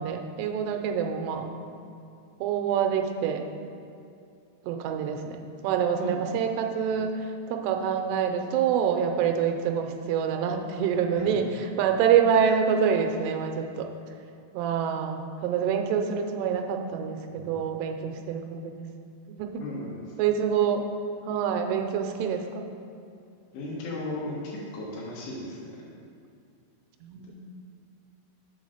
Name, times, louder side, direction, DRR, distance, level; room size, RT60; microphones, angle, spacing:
voice 1, 0.0-1.5 2.4-3.5 4.6-13.9 14.5-18.9 19.3-19.6 20.2-20.8 21.3-22.7 27.0-27.3, right 7 dB, 90° right, 4 dB, 2.7 m, -26 dB
voice 2, 19.6-20.1 23.5-25.8, left 1 dB, 90° left, -6 dB, 3.3 m, -36 dB
6.9 x 3.9 x 6.4 m, 2.5 s
omnidirectional pair, 4.7 m